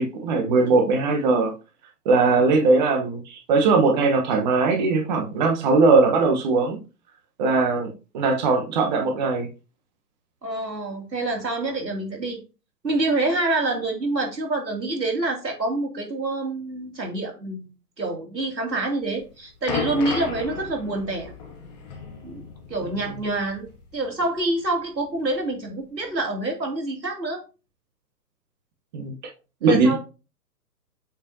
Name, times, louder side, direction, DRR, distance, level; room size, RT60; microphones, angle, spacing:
voice 1, 0.0-1.5 2.0-6.8 7.4-9.5 28.9-29.1 29.6-30.0, right 3 dB, 25° right, 2 dB, 1.1 m, -20 dB
voice 2, 10.4-12.4 12.8-17.7 18.0-21.3 22.2-27.4 29.6-30.0, right 2 dB, 85° right, 1 dB, 2.8 m, -27 dB
sound 1, 19.1-24.0 24.2-24.4 25.1-25.2, left 4 dB, 25° left, 1.3 m, -34 dB
8.3 x 5.0 x 2.8 m, 0.32 s
figure-of-eight pair, 135°, 49 cm